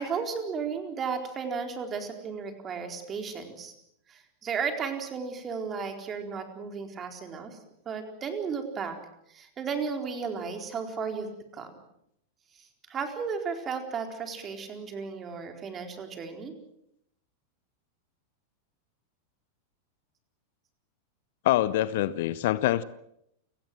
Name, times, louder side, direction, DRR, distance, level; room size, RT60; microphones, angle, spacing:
voice 1, 0.0-3.7 4.1-7.6 7.9-9.0 9.3-11.3 11.5-11.7 12.9-16.5, right 5 dB, 25° right, 5 dB, 4.2 m, -34 dB
voice 2, 21.4-22.8, left 14 dB, 55° left, 18 dB, 0.8 m, -25 dB
29.0 x 18.0 x 7.7 m, 0.77 s
figure-of-eight pair, 90°, 0 cm